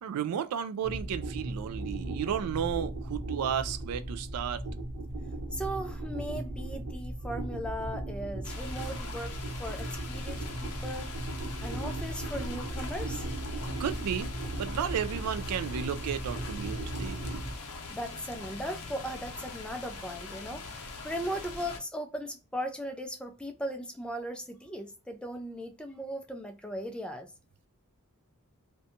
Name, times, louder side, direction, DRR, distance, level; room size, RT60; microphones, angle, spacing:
voice 1, 0.0-4.6 13.8-14.3 14.6-17.4, right 8 dB, 85° right, 0.3 m, -33 dB
sound 1, 0.8-17.5, right 1 dB, 60° right, 0.8 m, -37 dB
voice 2, 5.5-11.1 11.6-13.3 17.9-27.3, equal, 5° left, 0.3 m, -38 dB
sound 2, 8.4-21.8, left 3 dB, 80° left, 0.6 m, -42 dB
2.6 x 2.2 x 2.6 m
head